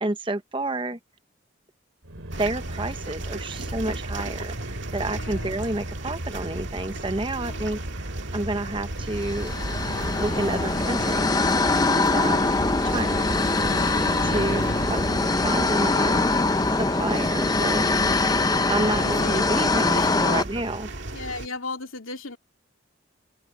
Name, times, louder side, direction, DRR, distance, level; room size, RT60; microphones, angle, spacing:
voice 1, 0.0-1.0 2.4-9.5 10.2-11.4 11.9-12.4 12.8-13.3 14.2-16.4 16.7-17.9 18.7-20.9, right 2 dB, 25° right, 1.0 m, -30 dB
sound 1, 2.0-20.8, right 1 dB, 90° right, 3.6 m, -35 dB
sound 2, 2.3-21.5, right 2 dB, 60° right, 2.2 m, -37 dB
voice 2, 3.5-3.8 5.0-5.6 7.3-7.9 17.5-18.3 18.9-19.4 19.9-20.4 20.8-20.9 21.1-22.4, left 3 dB, 85° left, 2.8 m, -37 dB
sound 3, 9.2-20.4, left 3 dB, 20° left, 0.6 m, -23 dB
open air
head